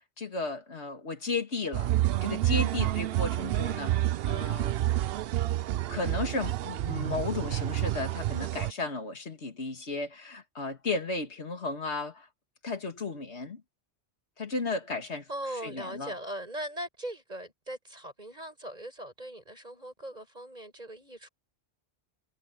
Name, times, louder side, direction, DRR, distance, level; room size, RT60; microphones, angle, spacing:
voice 1, 0.2-1.9 2.2-4.8 5.9-12.3 12.6-13.6 14.4-15.3 15.6-16.1, left 3 dB, 90° left, 2.4 m, -34 dB
sound 1, 1.7-8.7, right 14 dB, 70° right, 0.8 m, -29 dB
voice 2, 15.3-21.3, right 1 dB, 40° right, 7.8 m, -40 dB
omnidirectional pair, 1.1 m